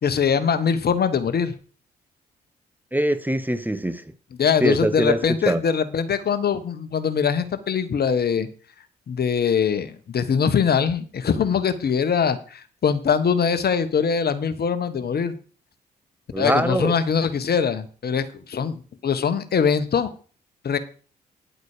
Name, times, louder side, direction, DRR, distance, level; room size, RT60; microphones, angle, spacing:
voice 1, 0.0-1.5 4.4-8.5 9.1-15.4 16.4-20.1 20.6-20.8, left 6 dB, 50° left, 1.3 m, -22 dB
voice 2, 2.9-4.0 4.6-5.2 5.5-5.6 16.3-16.9, right 1 dB, 10° right, 1.2 m, -22 dB
10.5 x 8.1 x 5.0 m
hypercardioid pair, 40°, 20 cm